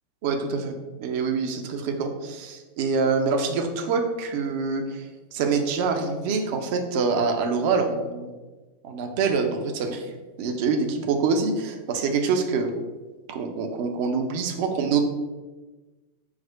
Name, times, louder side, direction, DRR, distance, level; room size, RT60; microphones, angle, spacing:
voice 1, 0.2-5.1 5.3-8.3 8.8-10.1 10.4-12.7 13.3-15.0, right 4 dB, 50° right, 5 dB, 0.6 m, -25 dB
4.7 x 2.1 x 4.5 m, 1.2 s
figure-of-eight pair, 90°, 0 cm